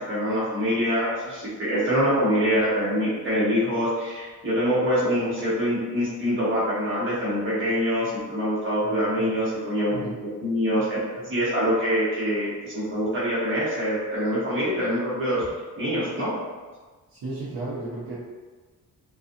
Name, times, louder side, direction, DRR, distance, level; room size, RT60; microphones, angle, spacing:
voice 1, 0.0-10.1 10.4-11.0 11.2-15.4 15.8-16.3, equal, 35° right, -9 dB, 1.0 m, -25 dB
voice 2, 8.8-9.4 9.9-10.2 17.1-18.2, right 2 dB, 70° right, -7 dB, 0.8 m, -34 dB
2.6 x 2.3 x 2.6 m, 1.3 s
wide cardioid pair, 155°, 37 cm